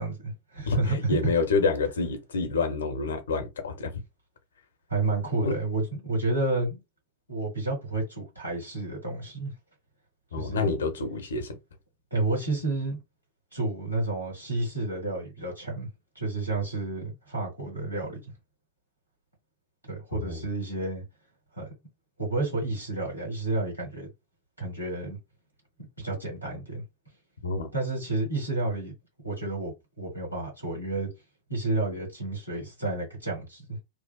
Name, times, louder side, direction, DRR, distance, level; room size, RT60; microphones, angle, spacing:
voice 1, 0.0-1.2 4.9-6.8 7.3-9.5 10.4-10.6 12.1-13.0 13.5-15.9 16.1-18.2 19.9-21.0 21.6-21.7 22.2-24.1 24.6-25.2 26.0-26.8 27.7-28.9 29.2-31.1 31.5-33.8, right 2 dB, 85° right, 1.4 m, -30 dB
voice 2, 0.7-3.9 5.4-5.6 10.3-11.6 20.1-20.4 27.4-27.7, left 4 dB, 65° left, 0.6 m, -28 dB
2.5 x 2.3 x 2.2 m
figure-of-eight pair, 90°, 0 cm